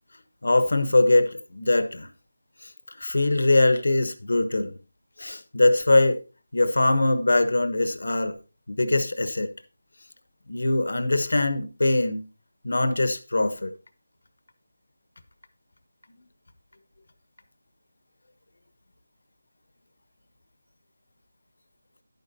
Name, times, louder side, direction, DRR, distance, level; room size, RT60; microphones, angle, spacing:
voice 1, 0.4-2.1 3.0-4.8 5.2-6.2 6.5-8.4 8.7-9.5 10.5-12.2 12.6-13.7, left 2 dB, 70° left, 1.2 m, -22 dB
11.0 x 9.3 x 2.7 m
figure-of-eight pair, 170°, 0 cm